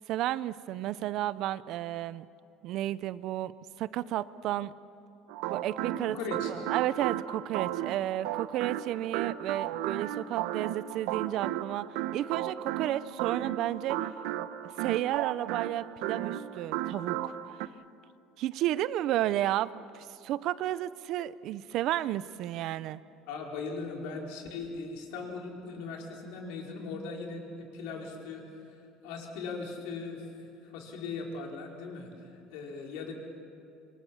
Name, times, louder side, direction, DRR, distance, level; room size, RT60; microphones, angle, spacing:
voice 1, 0.1-2.3 2.6-3.5 3.8-4.7 5.5-6.2 6.7-11.9 12.1-14.1 14.8-17.3 18.4-23.0, right 13 dB, 45° right, 17 dB, 0.5 m, -32 dB
sound 1, 5.3-17.7, right 12 dB, 75° right, 0.9 m, -34 dB
voice 2, 6.1-6.5 23.3-33.1, left 4 dB, 75° left, 0 dB, 4.6 m, -39 dB
26.5 x 24.0 x 7.1 m, 2.7 s
cardioid pair, 180°, 0 cm